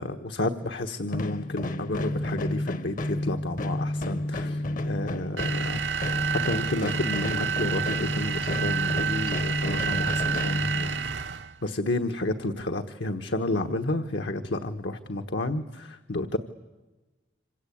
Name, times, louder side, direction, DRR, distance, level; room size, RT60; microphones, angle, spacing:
voice 1, 0.0-5.8 6.3-11.3 11.6-16.4, left 2 dB, 80° left, 6 dB, 1.3 m, -31 dB
sound 1, 1.1-11.3, left 1 dB, 45° left, 0.9 m, -31 dB
sound 2, 5.4-11.6, right 7 dB, 85° right, 0.9 m, -30 dB
26.5 x 25.5 x 8.7 m, 1.1 s
head